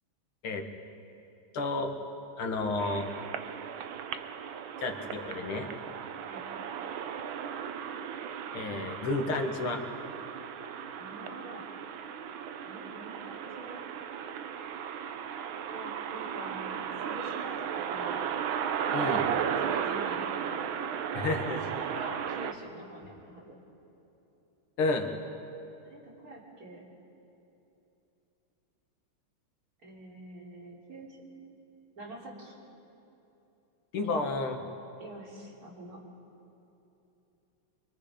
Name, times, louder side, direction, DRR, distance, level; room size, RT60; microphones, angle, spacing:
voice 1, 1.5-1.9 2.4-3.1 4.8-5.7 8.5-9.8 18.9-19.3 21.1-21.6 24.8-25.1 33.9-34.6, left 3 dB, 75° left, 4 dB, 2.4 m, -31 dB
sound 1, 2.8-22.5, right 8 dB, 70° right, 1.6 m, -35 dB
voice 2, 11.0-11.6 12.6-13.8 15.7-18.2 18.8-20.7 21.5-21.6 21.9-23.6 25.8-26.9 29.8-31.2 32.0-32.5 34.0-34.2 35.0-36.0, right 1 dB, 40° right, -4 dB, 4.0 m, -45 dB
25.0 x 24.0 x 5.1 m, 2.9 s
omnidirectional pair, 2.4 m